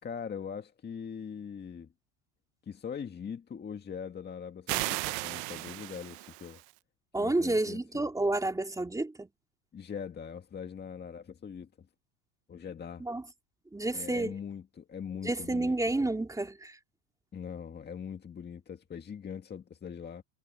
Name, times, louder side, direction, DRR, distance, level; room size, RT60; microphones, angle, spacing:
voice 1, 0.0-1.9 2.6-6.6 7.2-8.1 9.7-11.9 12.5-13.1 13.9-15.7 17.3-20.2, left 7 dB, 25° left, 1.8 m, -41 dB
sound 1, 4.7-6.7, right 23 dB, 65° right, 0.9 m, -35 dB
voice 2, 7.1-9.3 13.0-13.2 13.7-14.4 15.2-16.8, right 2 dB, 10° right, 3.0 m, -30 dB
supercardioid pair, 125°, 41 cm